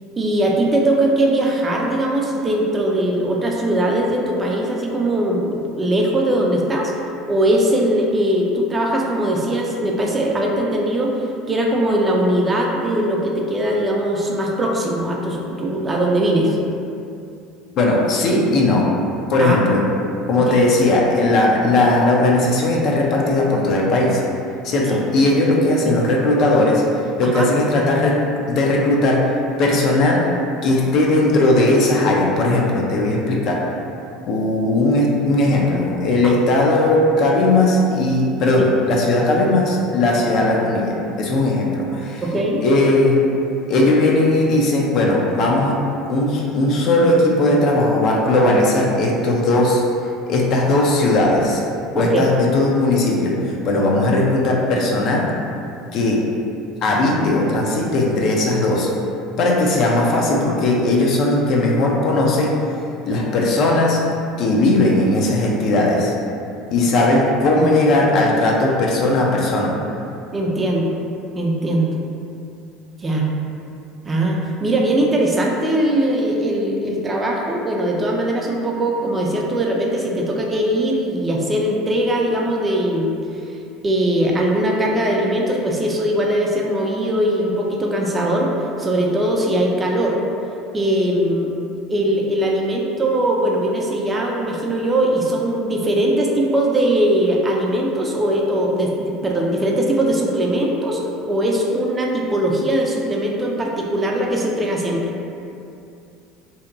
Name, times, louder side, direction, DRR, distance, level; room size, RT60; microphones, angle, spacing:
voice 1, 0.2-6.9 7.3-16.6 19.4-19.6 24.9-25.0 27.3-27.4 36.2-36.3 38.6-38.7 42.2-42.6 52.0-52.2 59.5-59.6 67.6-67.7 70.3-70.9 71.3-71.9 73.0-73.3 74.1-83.1 83.8-88.5 88.8-90.2 90.7-91.5 91.9-101.0 101.3-105.0, right 1 dB, 25° right, -1 dB, 0.4 m, -20 dB
voice 2, 17.8-18.9 19.3-19.9 20.3-24.2 24.6-26.8 27.2-29.3 29.6-30.3 30.6-33.6 34.2-42.2 42.6-43.2 43.7-45.8 46.1-49.8 50.3-51.6 51.9-55.3 55.9-56.3 56.8-58.9 59.4-62.6 63.1-64.0 64.4-66.1 66.7-69.7, left 2 dB, 55° left, -2 dB, 0.4 m, -17 dB
2.7 x 2.1 x 2.5 m, 2.6 s
supercardioid pair, 90°, 0 cm